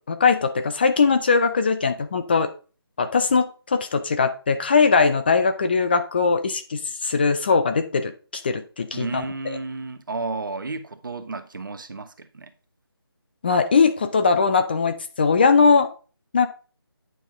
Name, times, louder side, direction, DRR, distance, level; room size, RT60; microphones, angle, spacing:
voice 1, 0.1-2.5 3.0-9.6 13.4-15.9 16.3-16.5, left 5 dB, 25° left, 0.5 m, -20 dB
voice 2, 8.9-12.5, right 3 dB, 55° right, 1.2 m, -32 dB
9.5 x 5.8 x 3.6 m
figure-of-eight pair, 160°, 13 cm